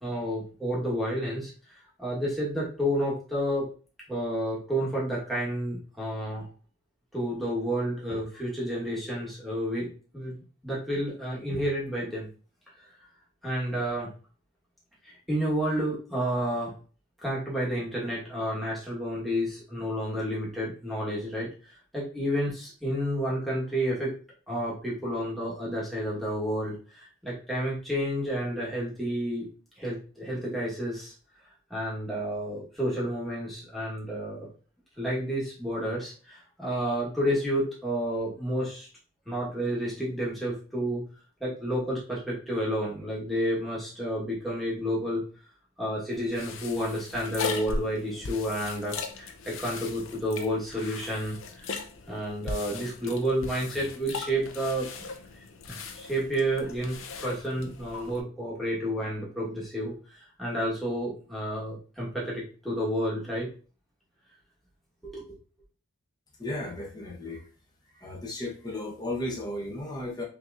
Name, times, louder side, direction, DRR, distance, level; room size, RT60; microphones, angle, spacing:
voice 1, 0.0-3.7 4.1-6.5 7.1-9.9 10.1-12.3 13.4-14.1 15.0-16.7 17.2-24.1 24.5-29.5 29.8-31.1 31.7-34.5 35.0-38.9 39.2-41.0 41.4-45.2 45.8-54.9 55.7-57.0 57.2-63.5 65.0-65.2, equal, ahead, -7 dB, 1.3 m, -30 dB
sound 1, 46.1-58.2, left 4 dB, 70° left, 0.6 m, -39 dB
voice 2, 66.4-67.4 68.0-70.2, left 1 dB, 20° left, -1 dB, 0.9 m, -34 dB
5.6 x 2.9 x 2.5 m, 0.38 s
head